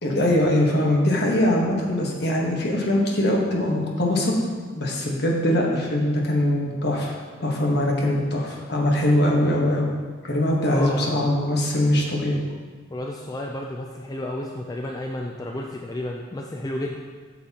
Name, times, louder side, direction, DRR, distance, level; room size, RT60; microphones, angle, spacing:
voice 1, 0.0-4.4 4.7-7.1 7.4-9.9 10.2-12.4, left 1 dB, 55° left, -1 dB, 1.2 m, -22 dB
voice 2, 10.6-11.3 12.9-17.0, left 1 dB, 20° left, 1 dB, 0.3 m, -32 dB
8.3 x 6.5 x 2.9 m, 1.5 s
head